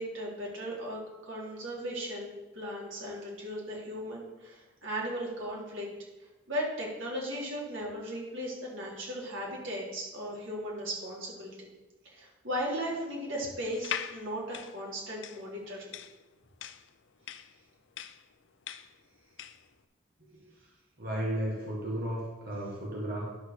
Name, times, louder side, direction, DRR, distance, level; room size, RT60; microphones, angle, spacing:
voice 1, 0.0-5.9 6.5-11.7 12.0-15.9, equal, 80° right, -3 dB, 3.3 m, -37 dB
sound 1, 13.7-19.7, left 9 dB, 65° left, 0.5 m, -41 dB
voice 2, 21.0-23.2, right 1 dB, 50° right, -4 dB, 1.9 m, -34 dB
11.0 x 4.7 x 6.6 m, 1.1 s
head